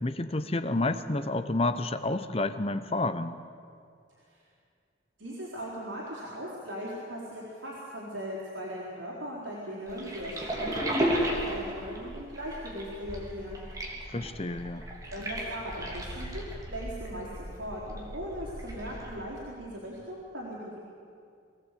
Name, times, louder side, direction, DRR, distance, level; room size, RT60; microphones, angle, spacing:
voice 1, 0.0-3.4 14.1-14.9, left 2 dB, 30° left, 11 dB, 0.8 m, -30 dB
voice 2, 5.2-13.6 15.1-16.4 16.7-20.8, equal, 80° right, -6 dB, 4.0 m, -39 dB
sound 1, 9.9-19.2, equal, 20° right, 3.4 m, -35 dB
23.5 x 16.0 x 8.4 m, 2.3 s
head